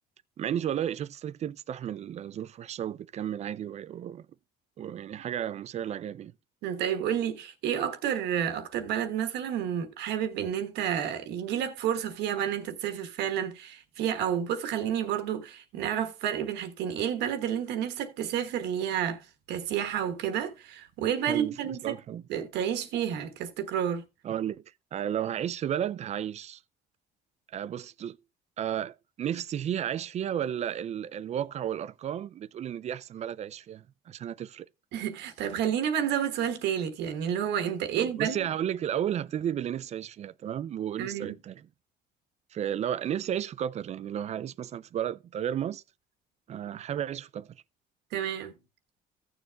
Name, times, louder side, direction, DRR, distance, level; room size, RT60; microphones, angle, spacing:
voice 1, 0.4-4.3 4.8-6.3 21.3-22.2 24.2-24.6 24.9-26.6 27.5-28.2 28.6-34.7 38.0-41.7 42.5-45.8 46.5-47.5, right 10 dB, 40° right, 0.4 m, -33 dB
voice 2, 6.6-22.0 22.3-24.0 34.9-38.5 41.0-41.4 48.1-48.5, right 9 dB, 85° right, 1.2 m, -30 dB
15.5 x 7.0 x 2.3 m
cardioid pair, 110°, 17 cm